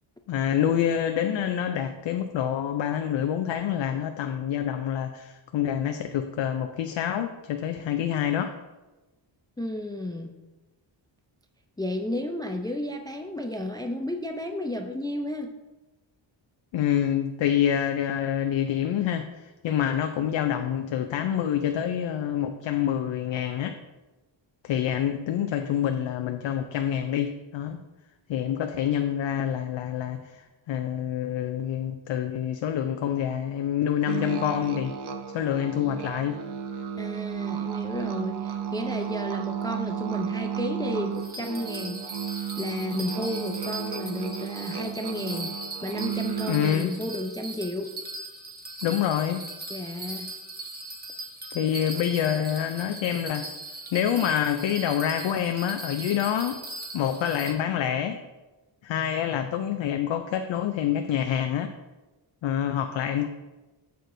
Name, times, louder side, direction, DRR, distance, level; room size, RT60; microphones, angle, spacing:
voice 1, 0.3-8.5 16.7-23.7 24.6-27.8 28.3-35.0 35.3-36.4 46.5-47.0 48.8-49.4 51.5-53.5 53.9-56.6 56.9-58.2 58.8-61.7 62.4-63.3, left 9 dB, 70° left, 6 dB, 0.5 m, -27 dB
voice 2, 9.6-10.3 11.8-15.5 37.0-42.1 42.6-45.5 45.8-47.9 49.7-50.3, left 1 dB, 10° left, 5 dB, 0.3 m, -32 dB
sound 1, 34.1-46.7, right 8 dB, 60° right, 0.7 m, -33 dB
Bell, 41.2-57.5, right 2 dB, 20° right, 0.8 m, -39 dB
6.6 x 6.4 x 2.6 m, 1.1 s
cardioid pair, 85°, 46 cm